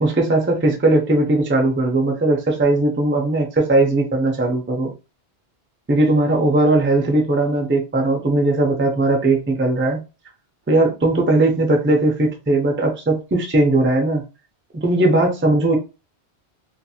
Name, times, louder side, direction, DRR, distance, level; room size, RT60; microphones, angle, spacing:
voice 1, 0.0-4.9 5.9-10.0 10.7-14.2 14.7-15.8, right 2 dB, 15° right, 0.5 m, -18 dB
2.5 x 2.5 x 2.8 m
omnidirectional pair, 1.1 m